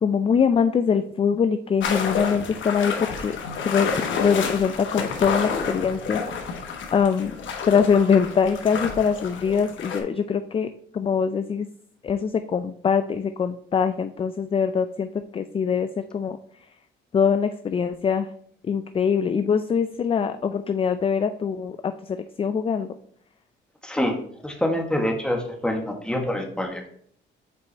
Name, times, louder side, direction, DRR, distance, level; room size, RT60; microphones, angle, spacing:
voice 1, 0.0-3.4 3.6-3.9 4.2-6.2 6.9-7.3 7.7-10.7 10.9-11.7 12.0-16.4 17.1-18.3 18.7-22.9, left 6 dB, 30° left, 10 dB, 0.3 m, -23 dB
sound 1, 1.8-10.0, left 5 dB, 75° left, 1.2 m, -30 dB
voice 2, 23.8-24.1 24.4-26.9, left 1 dB, 5° left, 2 dB, 1.3 m, -26 dB
6.8 x 4.7 x 3.3 m, 0.63 s
cardioid pair, 90°, 20 cm